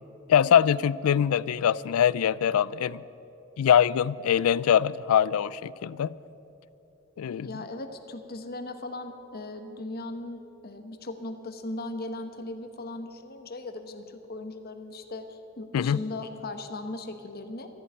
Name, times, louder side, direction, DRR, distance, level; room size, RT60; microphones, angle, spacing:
voice 1, 0.3-3.0 3.6-6.1 7.2-7.5 15.7-16.0, left 9 dB, 85° left, 20 dB, 0.3 m, -23 dB
voice 2, 7.4-17.7, left 2 dB, 45° left, 7 dB, 1.0 m, -38 dB
13.5 x 7.8 x 9.7 m, 2.9 s
head